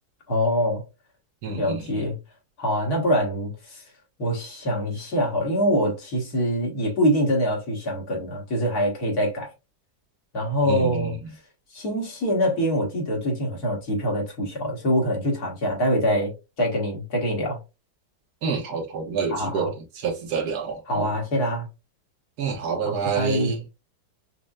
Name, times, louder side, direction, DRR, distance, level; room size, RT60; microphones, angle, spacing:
voice 1, 0.3-0.8 1.6-2.2 2.6-3.8 4.2-9.5 10.3-11.2 11.7-16.3 16.6-17.6 19.3-19.7 20.9-21.7 22.8-23.5, equal, 70° left, 2.1 m, -24 dB
voice 2, 1.4-2.1 10.6-11.3 18.4-21.1 22.4-23.6, right 5 dB, 75° right, 1.4 m, -28 dB
5.5 x 2.1 x 2.5 m
omnidirectional pair, 1.7 m